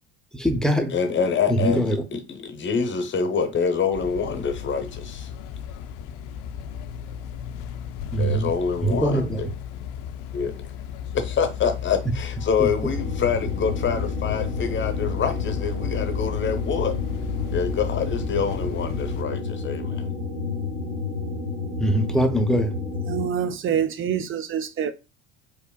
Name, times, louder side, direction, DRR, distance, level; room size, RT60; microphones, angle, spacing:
voice 1, 0.3-0.9 1.5-2.0 8.1-8.5 8.8-9.4 12.6-12.7 21.8-22.7, right 1 dB, ahead, 0.7 m, -22 dB
voice 2, 0.9-5.3 8.2-9.5 10.3-10.5 11.1-17.0 17.5-20.1, left 6 dB, 35° left, 0.9 m, -26 dB
sound 1, 3.9-19.2, left 8 dB, 60° left, 0.5 m, -33 dB
sound 2, 12.9-23.3, left 4 dB, 90° right, 1.5 m, -30 dB
voice 3, 23.1-24.9, right 8 dB, 35° right, 0.6 m, -26 dB
4.4 x 3.0 x 2.3 m
hypercardioid pair, 75°, 35 cm